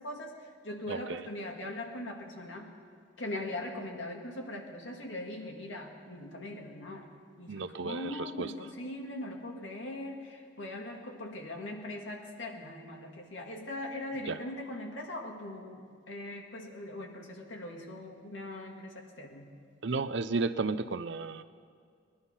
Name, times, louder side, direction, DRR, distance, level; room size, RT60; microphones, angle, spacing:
voice 1, 0.0-2.7 3.2-7.1 7.4-19.5, left 1 dB, 85° left, 1 dB, 2.0 m, -41 dB
voice 2, 0.9-1.2 7.5-8.5 14.3-14.4 19.8-21.4, right 4 dB, 75° right, 12 dB, 0.6 m, -33 dB
19.5 x 11.5 x 5.7 m, 2.2 s
head